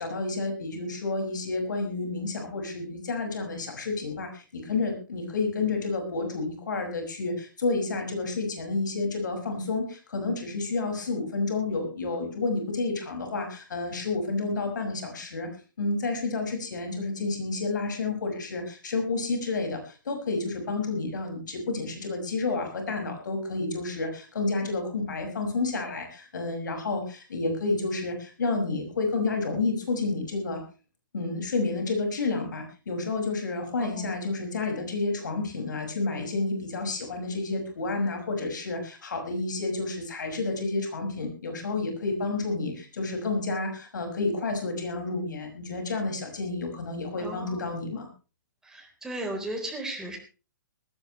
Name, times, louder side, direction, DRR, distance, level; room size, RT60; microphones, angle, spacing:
voice 1, 0.0-15.5 15.8-30.6 31.1-48.1, left 3 dB, 65° left, 4 dB, 6.1 m, -30 dB
voice 2, 33.8-34.2 47.2-47.6 48.6-50.2, right 1 dB, 5° right, 1 dB, 4.0 m, -36 dB
19.5 x 16.5 x 3.2 m, 0.34 s
figure-of-eight pair, 125°, 11 cm